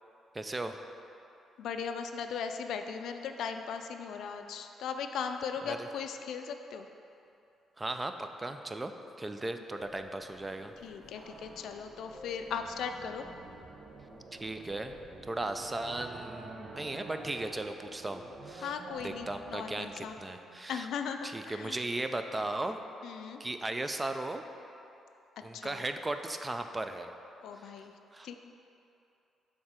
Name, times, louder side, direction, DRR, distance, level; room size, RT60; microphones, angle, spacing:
voice 1, 0.3-0.8 5.7-5.8 7.8-8.9 9.2-10.7 14.4-14.9 15.2-18.7 19.0-20.9 21.2-22.8 23.4-24.4 25.4-27.1 27.6-27.7 28.1-28.3, right 2 dB, 20° right, 7 dB, 0.3 m, -36 dB
voice 2, 1.6-6.9 10.8-13.2 18.6-20.2 20.7-21.8 23.0-23.4 25.5-25.8 27.4-27.9 28.2-28.4, left 6 dB, 75° left, 6 dB, 0.3 m, -38 dB
sound 1, 9.7-15.8, left 2 dB, 15° left, 1.2 m, -54 dB
sound 2, 11.1-21.2, right 3 dB, 55° right, 0.6 m, -49 dB
6.6 x 3.7 x 4.3 m, 2.8 s
cardioid pair, 90°, 0 cm